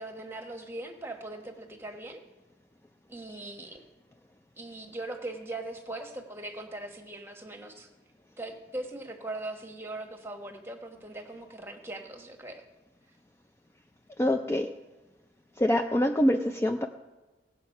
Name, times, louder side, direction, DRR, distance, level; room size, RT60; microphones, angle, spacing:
voice 1, 0.0-2.2 3.1-3.8 4.6-7.9 8.4-12.6, right 2 dB, 15° right, 5 dB, 1.2 m, -40 dB
voice 2, 14.2-14.7 15.6-16.9, left 1 dB, 15° left, 4 dB, 0.4 m, -25 dB
17.5 x 7.1 x 5.4 m, 1.1 s
head